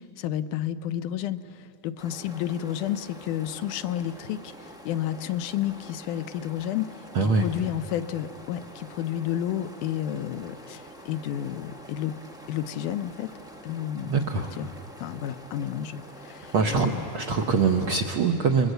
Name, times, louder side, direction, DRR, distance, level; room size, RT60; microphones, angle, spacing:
voice 1, 0.0-4.5 4.9-6.9 7.2-12.1 12.5-13.3 13.6-14.7 15.0-17.1, left 11 dB, 80° left, 11 dB, 2.2 m, -31 dB
sound 1, 2.0-18.0, equal, 5° right, 0.4 m, -46 dB
voice 2, 7.1-7.5 14.0-14.5 16.5-18.7, right 4 dB, 70° right, 3 dB, 1.2 m, -23 dB
29.0 x 22.5 x 8.0 m, 2.8 s
omnidirectional pair, 3.7 m